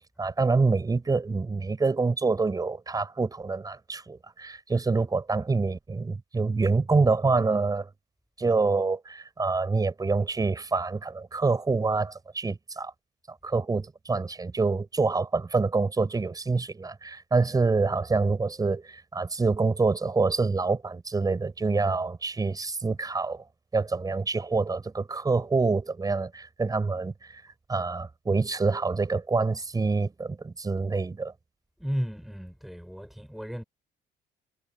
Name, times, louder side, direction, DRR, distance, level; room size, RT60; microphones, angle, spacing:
voice 1, 0.2-7.9 8.4-12.9 13.3-23.4 23.7-27.4 27.7-31.3, right 3 dB, 20° right, 5.1 m, -26 dB
voice 2, 31.8-33.6, equal, ahead, 5.4 m, -34 dB
cardioid pair, 110°, 17 cm